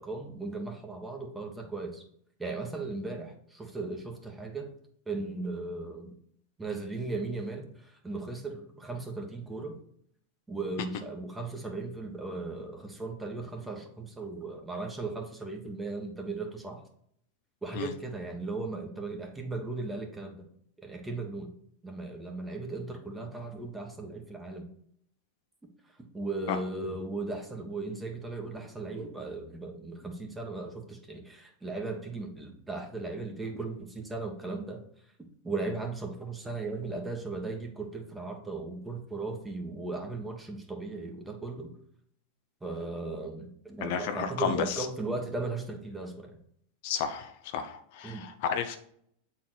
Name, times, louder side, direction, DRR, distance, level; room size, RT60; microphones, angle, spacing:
voice 1, 0.0-2.0 2.4-4.7 5.1-6.1 6.6-9.8 10.5-16.8 17.6-20.4 20.8-21.5 21.8-24.7 26.1-34.8 35.4-41.8 42.6-46.4 48.0-48.3, right 3 dB, 10° right, 3 dB, 1.4 m, -37 dB
voice 2, 43.8-44.9 46.8-48.8, left 8 dB, 60° left, 7 dB, 0.8 m, -32 dB
7.3 x 4.3 x 4.2 m, 0.66 s
hypercardioid pair, 110°, 0 cm